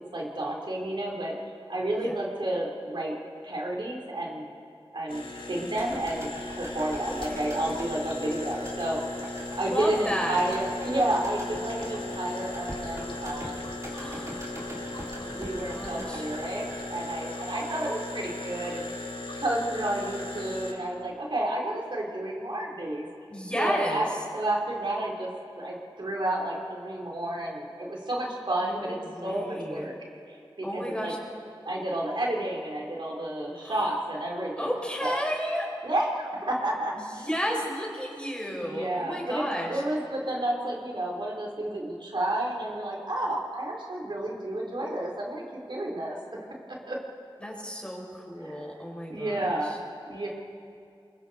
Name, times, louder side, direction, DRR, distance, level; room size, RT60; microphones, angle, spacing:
voice 1, 0.0-1.4 1.7-3.2 3.4-4.5 4.9-9.1 9.6-13.7 15.1-18.9 19.4-23.1 23.6-24.1 24.3-25.3 25.6-29.0 29.2-29.9 30.3-31.1 31.6-34.7 35.0-35.3 35.8-37.3 38.5-46.2 46.9-47.0 48.4-48.6 49.1-49.7 50.1-50.3, right 1 dB, 60° right, -2 dB, 3.4 m, -31 dB
sound 1, 5.1-20.7, left 2 dB, 70° left, 3.0 m, -37 dB
sound 2, 5.8-17.9 18.2-18.3, right 1 dB, 35° right, 4.8 m, -43 dB
voice 2, 7.1-7.5 9.6-10.4 13.9-14.4 15.2-16.2 23.3-24.1 28.6-29.9 30.6-31.2 33.6-33.9 34.6-35.7 36.9-39.8 47.4-49.8, equal, 10° left, -1 dB, 5.1 m, -33 dB
28.0 x 22.5 x 4.2 m, 2.5 s
wide cardioid pair, 60°, 9 cm